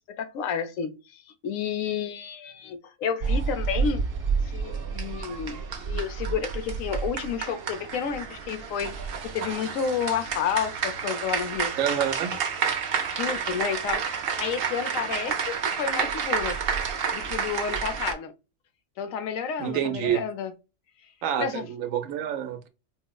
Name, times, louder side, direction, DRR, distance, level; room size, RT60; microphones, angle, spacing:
voice 1, 0.2-4.0 4.4-8.9 9.3-11.7 13.0-14.0 14.4-16.6 17.1-18.3 19.0-20.5 21.4-21.6, left 7 dB, 85° left, 1.0 m, -31 dB
sound 1, 3.2-18.1, right 6 dB, 60° right, 0.7 m, -30 dB
voice 2, 11.8-12.3 19.6-20.2 21.2-22.7, right 9 dB, 85° right, 1.0 m, -27 dB
4.5 x 2.0 x 2.2 m
omnidirectional pair, 1.4 m